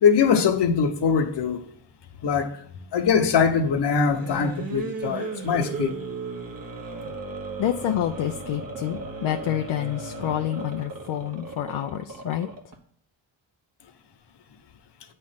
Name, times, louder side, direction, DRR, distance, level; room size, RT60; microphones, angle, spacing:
voice 1, 0.0-1.6 2.2-2.6 2.9-6.0, left 6 dB, 55° left, 1.0 m, -22 dB
sound 1, 4.0-12.8, right 3 dB, 45° right, 1.3 m, -35 dB
voice 2, 7.6-12.5, left 12 dB, 70° left, 0.6 m, -28 dB
8.2 x 3.2 x 5.7 m
cardioid pair, 80°, 50 cm